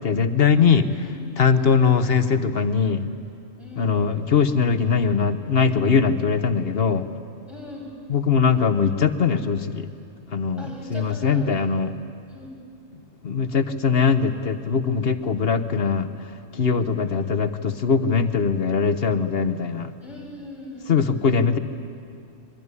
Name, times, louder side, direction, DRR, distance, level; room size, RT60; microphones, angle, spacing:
voice 1, 0.0-0.9 1.4-3.0 3.8-7.1 8.1-9.9 10.3-11.9 13.2-16.1 16.5-19.9 20.9-21.6, left 5 dB, 50° left, 11 dB, 1.2 m, -21 dB
voice 2, 1.5-1.8 3.6-4.0 7.5-8.0 10.6-11.8 12.3-12.5 20.0-21.3, left 2 dB, ahead, -3 dB, 7.2 m, -40 dB
25.0 x 23.0 x 9.7 m, 2.5 s
omnidirectional pair, 1.3 m